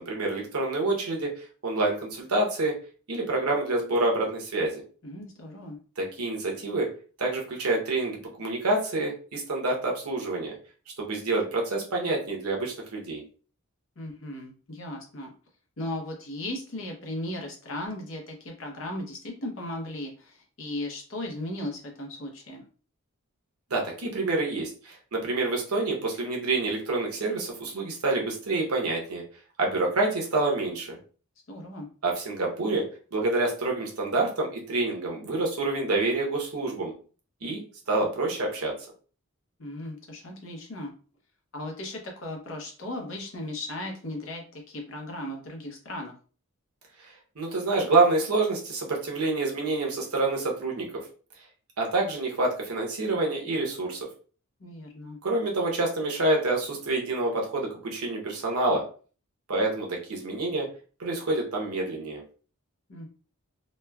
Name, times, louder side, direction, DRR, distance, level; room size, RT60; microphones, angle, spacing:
voice 1, 0.0-2.8 3.1-4.8 6.0-6.9 7.2-10.5 11.0-13.2 23.7-29.2 29.6-31.0 32.0-32.8 33.1-36.9 37.4-37.6 37.9-38.7 47.4-51.0 51.8-54.1 55.2-58.8 59.5-60.7 61.0-62.2, right 2 dB, 90° right, 0 dB, 0.8 m, -27 dB
voice 2, 5.0-5.8 14.0-15.3 15.8-22.6 31.5-31.9 39.6-40.9 41.5-46.1 54.6-55.2 62.9-63.1, left 1 dB, 60° left, 1 dB, 0.7 m, -36 dB
3.0 x 2.2 x 2.3 m, 0.40 s
head